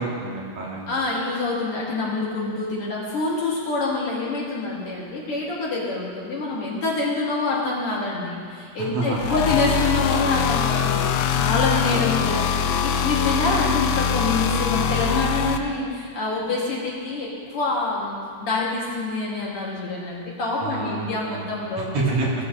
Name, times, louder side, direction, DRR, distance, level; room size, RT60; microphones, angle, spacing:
voice 1, 0.0-0.9 8.8-9.6 20.6-22.4, right 3 dB, 70° right, -4 dB, 2.6 m, -28 dB
voice 2, 0.9-22.0, left 3 dB, 55° left, -5 dB, 2.1 m, -26 dB
sound 1, 9.1-15.6, left 7 dB, 90° left, 1.4 m, -23 dB
18.0 x 8.1 x 2.6 m, 2.2 s
omnidirectional pair, 3.4 m